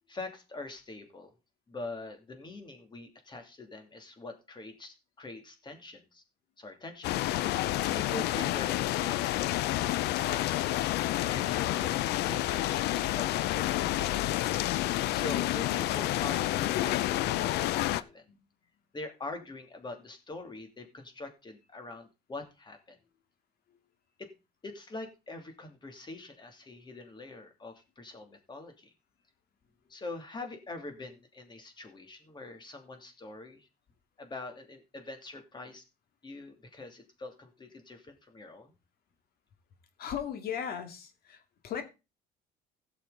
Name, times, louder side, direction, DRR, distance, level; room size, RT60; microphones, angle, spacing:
voice 1, 0.1-1.3 1.7-6.2 6.6-11.0 11.3-14.2 15.1-18.2 18.9-23.0 24.2-24.3 24.6-28.9 29.9-33.7 34.2-35.8 36.2-38.7, left 2 dB, 25° left, 2.8 m, -44 dB
sound 1, 7.0-18.0, left 15 dB, 80° left, 0.6 m, -29 dB
voice 2, 18.0-18.4 23.7-23.8 40.0-41.8, left 8 dB, 65° left, 2.4 m, -41 dB
16.0 x 6.9 x 4.0 m
cardioid pair, 110°, 17 cm